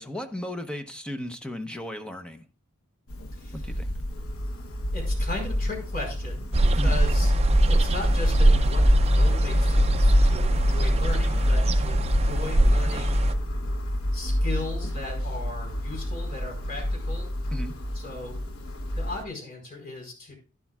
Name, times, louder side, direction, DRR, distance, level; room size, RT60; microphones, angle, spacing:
voice 1, 0.0-2.4 3.5-3.9 6.8-7.0 17.5-17.7, left 1 dB, 5° left, 5 dB, 0.8 m, -35 dB
sound 1, 3.1-19.2, equal, 70° left, 0.9 m, -25 dB
voice 2, 3.3-3.6 4.9-7.3 7.7-13.2 14.1-17.3 17.9-18.4 18.9-20.3, left 3 dB, 45° left, -1 dB, 4.6 m, -37 dB
sound 2, 6.5-13.3, right 2 dB, 30° right, 0.5 m, -24 dB
11.5 x 11.0 x 2.4 m, 0.34 s
head